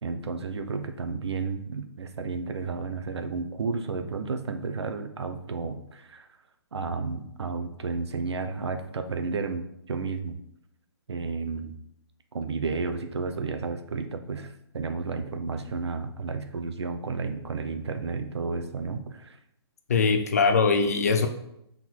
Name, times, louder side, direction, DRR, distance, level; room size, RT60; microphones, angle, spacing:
voice 1, 0.0-6.3 6.7-10.4 11.1-11.7 12.3-19.4, right 4 dB, 70° right, 8 dB, 0.8 m, -32 dB
voice 2, 19.9-21.3, left 4 dB, 35° left, 7 dB, 0.5 m, -21 dB
5.9 x 4.0 x 4.6 m, 0.78 s
hypercardioid pair, 175°, 14 cm